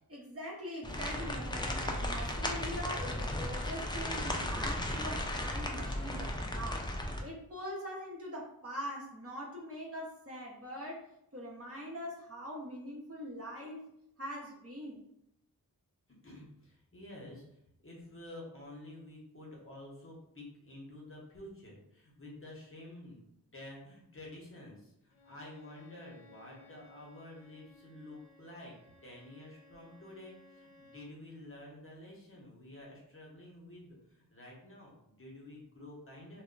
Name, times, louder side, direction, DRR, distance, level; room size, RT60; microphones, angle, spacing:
voice 1, 0.1-11.1 11.3-13.8 14.2-15.0, equal, 40° right, -4 dB, 0.8 m, -43 dB
sound 1, 0.8-7.2, left 1 dB, 15° left, 0.3 m, -35 dB
voice 2, 16.2-23.2 23.5-28.8 29.0-36.4, left 1 dB, 35° left, -3 dB, 0.8 m, -50 dB
Bowed string instrument, 25.1-31.2, left 3 dB, 70° left, 0.6 m, -60 dB
2.1 x 2.1 x 3.7 m, 0.80 s
wide cardioid pair, 80°, 37 cm